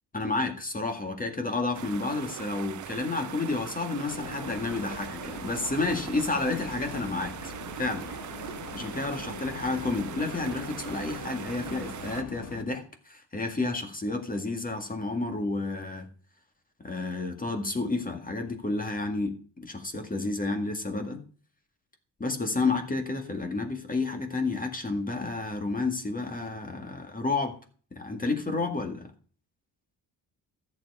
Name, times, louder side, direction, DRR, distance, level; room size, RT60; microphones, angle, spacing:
voice 1, 0.1-8.1 8.7-16.1 16.8-21.2 22.2-27.6 28.0-29.1, left 3 dB, 20° left, 5 dB, 2.0 m, -31 dB
sound 1, 1.7-12.2, right 11 dB, 50° right, 0.5 m, -41 dB
sound 2, 4.1-12.6, left 6 dB, 55° left, 1.5 m, -43 dB
14.0 x 7.2 x 4.9 m, 0.42 s
wide cardioid pair, 130°, 38 cm